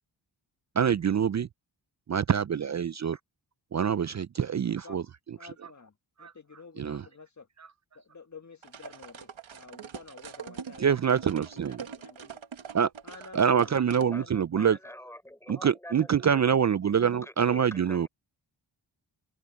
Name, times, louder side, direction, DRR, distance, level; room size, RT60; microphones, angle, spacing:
voice 1, 0.8-1.5 2.1-3.2 3.7-5.0 6.2-6.3 6.8-7.1 10.8-11.8 12.7-12.9 13.3-14.8 15.5-18.1, right 7 dB, 40° right, 0.4 m, -25 dB
voice 2, 4.7-5.0 5.4-7.5 7.9-12.4 13.0-14.8, left 4 dB, 35° left, 1.8 m, -50 dB
sound 1, 8.6-14.1, right 7 dB, 75° right, 1.6 m, -43 dB
voice 3, 14.6-16.6 16.9-18.1, left 1 dB, 5° left, 3.8 m, -46 dB
cardioid pair, 60°, 47 cm